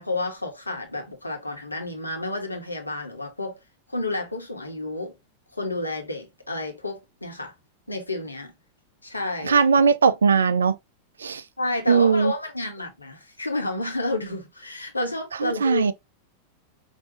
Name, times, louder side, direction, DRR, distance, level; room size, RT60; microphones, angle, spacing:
voice 1, 0.0-3.6 3.9-5.1 5.5-7.5 7.9-8.5 9.0-9.6 11.6-15.9, left 2 dB, 80° left, 1.2 m, -30 dB
voice 2, 9.4-10.8 11.2-11.4 11.9-12.3 15.4-15.9, right 5 dB, 70° right, 0.5 m, -19 dB
5.3 x 2.7 x 2.8 m
figure-of-eight pair, 90°, 0 cm